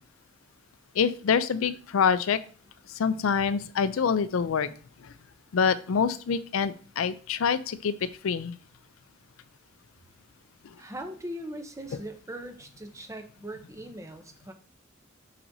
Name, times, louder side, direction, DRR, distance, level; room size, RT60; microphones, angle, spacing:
voice 1, 1.0-2.4 2.9-4.7 5.5-8.5, left 6 dB, 85° left, 14 dB, 0.4 m, -26 dB
voice 2, 10.8-14.5, right 1 dB, 15° right, 6 dB, 0.7 m, -40 dB
5.9 x 5.8 x 2.7 m, 0.42 s
head